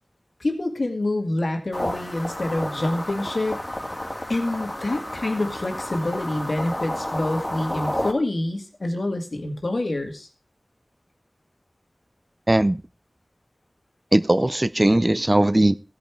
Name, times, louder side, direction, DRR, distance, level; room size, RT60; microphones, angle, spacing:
voice 1, 0.4-3.6 4.3-10.3, left 2 dB, 70° left, 4 dB, 1.9 m, -26 dB
sound 1, 1.7-8.1, left 1 dB, 20° left, 2.0 m, -31 dB
voice 2, 12.5-12.8 14.1-15.8, right 1 dB, 30° right, 14 dB, 0.6 m, -19 dB
15.5 x 5.2 x 4.6 m, 0.32 s
wide cardioid pair, 40°, 0 cm